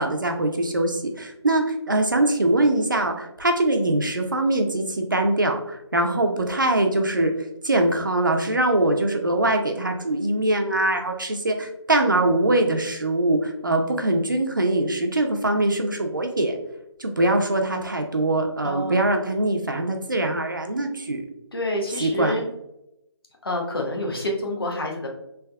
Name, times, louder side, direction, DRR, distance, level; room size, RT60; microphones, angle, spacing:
voice 1, 0.0-7.3 7.6-16.6 17.0-21.2 22.0-22.4, right 2 dB, 45° right, 4 dB, 0.4 m, -22 dB
voice 2, 18.6-19.0 21.5-22.5 23.4-25.1, left 1 dB, 55° left, 1 dB, 0.8 m, -28 dB
3.4 x 2.7 x 2.2 m, 0.83 s
hypercardioid pair, 180°, 15 cm